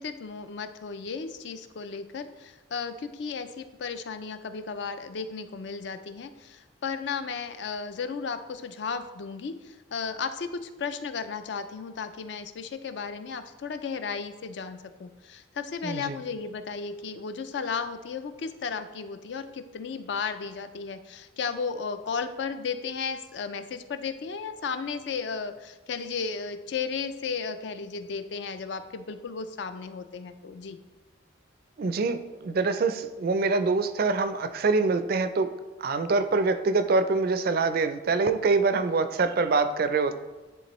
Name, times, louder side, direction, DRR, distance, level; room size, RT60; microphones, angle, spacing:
voice 1, 0.0-30.8, left 5 dB, 60° left, 10 dB, 0.4 m, -34 dB
voice 2, 15.8-16.2 31.8-35.5 35.8-40.2, right 3 dB, 50° right, 11 dB, 0.4 m, -25 dB
10.0 x 3.6 x 3.0 m, 1.2 s
head